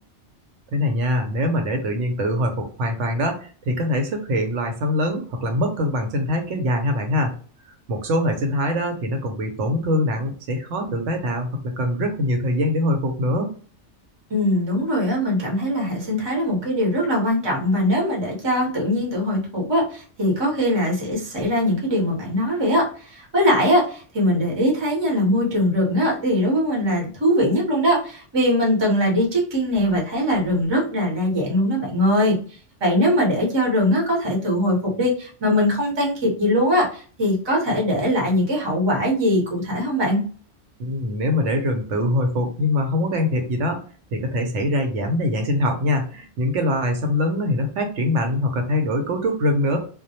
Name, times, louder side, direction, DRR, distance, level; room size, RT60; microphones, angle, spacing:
voice 1, 0.7-7.3 7.9-11.5 11.8-13.5 40.8-43.8 44.1-49.8, left 1 dB, 90° right, 4 dB, 0.9 m, -23 dB
voice 2, 14.3-32.4 32.8-40.2, equal, 25° right, -2 dB, 0.7 m, -21 dB
2.2 x 2.1 x 2.7 m, 0.41 s
omnidirectional pair, 1.2 m